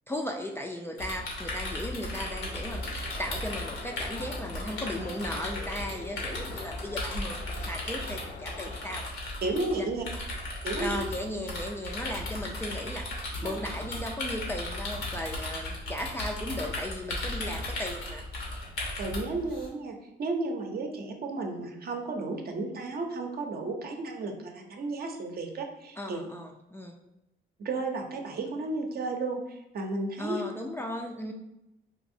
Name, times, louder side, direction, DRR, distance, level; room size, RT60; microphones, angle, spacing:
voice 1, 0.1-9.0 9.7-9.8 10.7-18.2 26.0-27.0 30.2-31.3, left 1 dB, 10° left, 1 dB, 0.4 m, -36 dB
sound 1, 1.0-19.7, left 1 dB, 90° left, 1.1 m, -36 dB
sound 2, 2.2-9.0, left 4 dB, 65° left, 0.6 m, -46 dB
voice 2, 9.4-10.0 10.6-11.0 13.4-13.6 19.0-26.2 27.6-30.4, right 3 dB, 50° right, 2 dB, 0.6 m, -33 dB
3.9 x 2.6 x 2.6 m, 0.91 s
cardioid pair, 90°, 20 cm